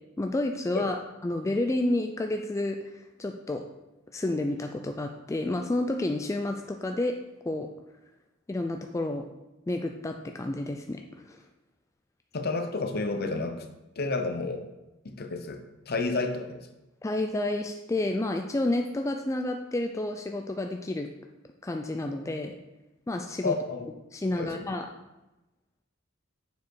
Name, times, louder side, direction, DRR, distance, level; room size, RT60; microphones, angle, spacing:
voice 1, 0.2-1.0 1.2-3.6 4.1-7.1 7.5-7.7 8.5-9.3 9.7-11.4 17.0-21.1 21.6-22.6 23.1-23.5 24.1-24.9, left 2 dB, 15° left, 4 dB, 0.3 m, -30 dB
voice 2, 12.3-13.6 14.0-14.7 15.0-16.7 23.4-23.9 24.4-24.7, left 3 dB, 50° left, 6 dB, 0.7 m, -31 dB
6.9 x 4.8 x 4.6 m, 1.0 s
head